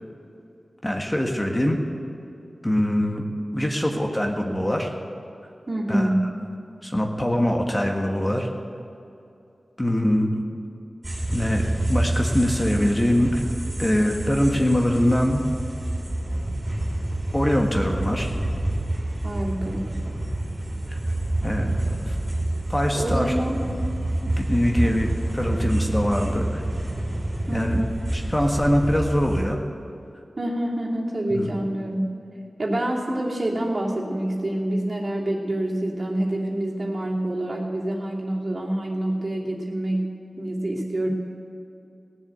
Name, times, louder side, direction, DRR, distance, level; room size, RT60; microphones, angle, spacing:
voice 1, 0.8-1.8 2.6-3.2 3.5-4.9 5.9-6.1 6.8-8.5 9.8-10.4 11.3-11.6 11.9-13.4 13.8-15.4 17.3-18.3 19.6-19.7 20.9-21.0 21.4-22.2 22.7-23.3 24.2-25.1 25.4-26.6 27.5-27.8 28.1-29.6 31.3-31.5, equal, 20° left, 2 dB, 1.5 m, -23 dB
voice 2, 5.7-6.3 19.2-19.9 22.9-23.7 24.8-24.9 27.5-28.0 30.4-32.2 32.6-41.1, right 1 dB, 45° right, -3 dB, 2.7 m, -27 dB
sound 1, 11.0-29.5, right 1 dB, 25° right, 3.6 m, -28 dB
17.5 x 7.2 x 8.2 m, 2.7 s
cardioid pair, 55°, 0 cm